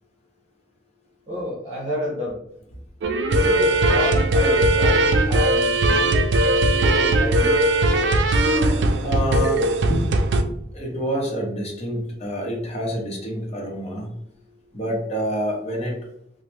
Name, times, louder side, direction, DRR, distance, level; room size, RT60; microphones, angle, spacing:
voice 1, 1.3-2.4 3.3-7.5, left 1 dB, 35° right, -4 dB, 0.8 m, -31 dB
sound 1, 3.0-10.4, right 1 dB, 80° right, 0.4 m, -19 dB
voice 2, 8.7-10.1 10.4-14.1 14.7-16.0, equal, 40° left, -2 dB, 0.8 m, -27 dB
3.0 x 2.1 x 3.2 m, 0.73 s
head